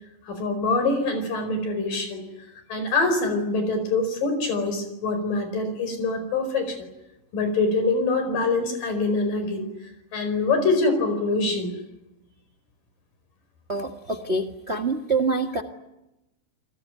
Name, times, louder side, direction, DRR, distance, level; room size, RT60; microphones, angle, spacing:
voice 1, 0.2-2.2 2.7-6.8 7.3-9.6 10.1-11.7, left 3 dB, 75° left, 8 dB, 6.6 m, -24 dB
voice 2, 13.7-15.6, right 3 dB, 40° right, 4 dB, 1.0 m, -26 dB
29.5 x 20.0 x 9.5 m, 0.94 s
omnidirectional pair, 3.9 m